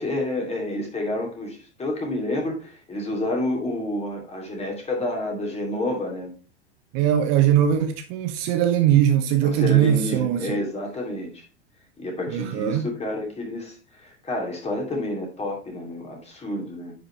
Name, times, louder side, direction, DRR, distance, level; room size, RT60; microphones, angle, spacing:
voice 1, 0.0-6.3 9.4-11.4 12.0-16.9, left 1 dB, 20° left, 2.7 m, -29 dB
voice 2, 6.9-10.6 12.3-12.9, right 10 dB, 40° right, 0.9 m, -20 dB
10.0 x 5.1 x 3.2 m
figure-of-eight pair, 85°, 35 cm